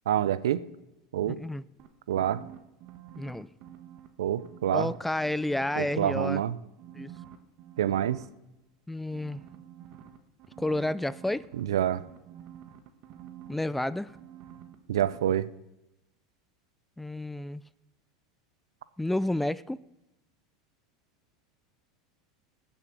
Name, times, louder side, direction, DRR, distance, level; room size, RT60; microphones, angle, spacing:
voice 1, 0.1-0.6 1.1-1.4 2.1-2.4 4.2-4.9 5.8-6.6 7.8-8.2 11.6-12.0 14.9-15.5, right 10 dB, 85° right, 0.6 m, -27 dB
voice 2, 1.2-1.6 3.2-3.5 4.7-6.4 6.9-7.1 8.9-9.4 10.6-11.5 13.5-14.1 17.0-17.6 19.0-19.8, left 1 dB, 5° left, 0.4 m, -30 dB
sound 1, 1.8-4.1 4.4-6.4 6.8-8.3 9.1-14.8 15.0-15.2, right 10 dB, 55° right, 1.5 m, -48 dB
17.5 x 7.2 x 6.2 m
hypercardioid pair, 100°, 2 cm